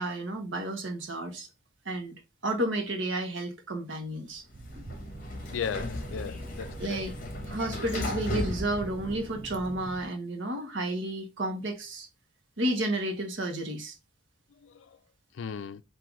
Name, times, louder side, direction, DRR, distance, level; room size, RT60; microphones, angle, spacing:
voice 1, 0.0-1.5 1.9-2.1 2.4-4.4 6.8-7.1 7.5-12.1 12.6-14.0, right 1 dB, 70° right, 1.0 m, -31 dB
Sliding door, 4.5-9.7, left 2 dB, 40° left, 0.9 m, -36 dB
sound 1, 4.5-10.1, right 2 dB, 30° right, 0.5 m, -44 dB
voice 2, 5.5-7.0 14.6-14.7 15.4-15.8, left 7 dB, 70° left, 0.4 m, -36 dB
3.8 x 2.5 x 4.5 m
head